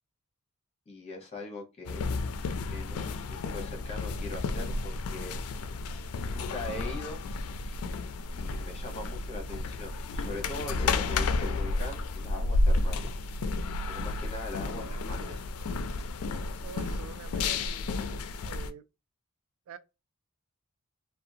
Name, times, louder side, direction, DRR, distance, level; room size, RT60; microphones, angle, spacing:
voice 1, 0.9-2.1 2.7-5.4 6.3-7.2 8.3-13.1 13.9-15.4, left 2 dB, 30° left, 0.9 m, -41 dB
sound 1, 1.9-18.7, left 3 dB, 80° left, 0.4 m, -32 dB
voice 2, 14.7-15.4 16.6-18.2 18.4-18.8 19.7-19.8, right 6 dB, 75° right, 0.3 m, -46 dB
2.6 x 2.2 x 2.6 m
head